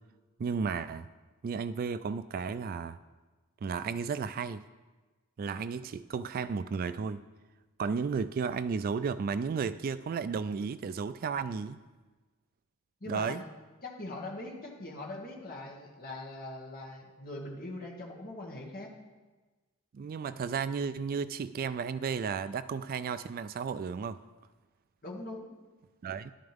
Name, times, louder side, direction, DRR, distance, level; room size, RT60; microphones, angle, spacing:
voice 1, 0.4-1.1 1.4-3.0 3.6-4.6 5.4-7.2 7.8-11.8 13.1-13.4 19.9-24.2 26.0-26.3, right 5 dB, 40° right, 14 dB, 0.3 m, -33 dB
voice 2, 13.0-13.4 13.8-18.9 25.0-25.5, left 2 dB, 40° left, -1 dB, 2.0 m, -41 dB
12.0 x 11.0 x 3.5 m, 1.3 s
head